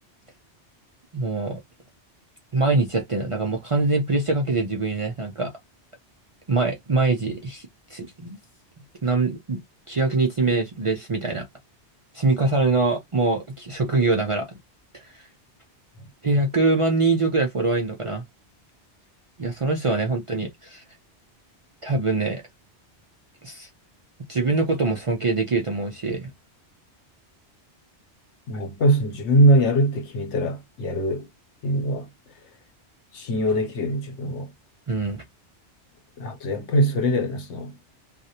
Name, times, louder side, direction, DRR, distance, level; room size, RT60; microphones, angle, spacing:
voice 1, 1.1-1.6 2.5-5.5 6.5-8.4 9.0-9.6 9.9-11.5 12.1-14.5 14.9-15.1 16.2-18.2 19.4-20.8 21.8-22.4 23.4-23.7 24.3-26.3 34.9-35.2, right 3 dB, 45° right, 0.4 m, -23 dB
voice 2, 28.5-31.3 31.6-32.1 33.1-34.5 36.2-37.7, right 1 dB, 85° left, 1.1 m, -22 dB
2.4 x 2.1 x 2.7 m
omnidirectional pair, 1.1 m